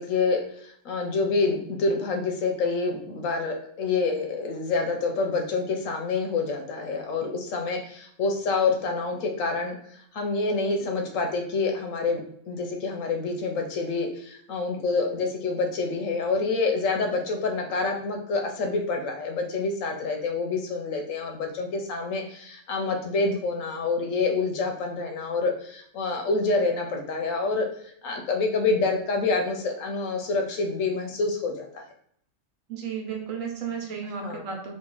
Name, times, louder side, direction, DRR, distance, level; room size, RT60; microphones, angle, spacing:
voice 1, 0.0-31.8 34.2-34.5, left 3 dB, 85° left, 3 dB, 1.1 m, -27 dB
voice 2, 32.7-34.7, right 7 dB, 90° right, 1 dB, 1.3 m, -33 dB
3.2 x 2.5 x 3.8 m, 0.66 s
omnidirectional pair, 1.3 m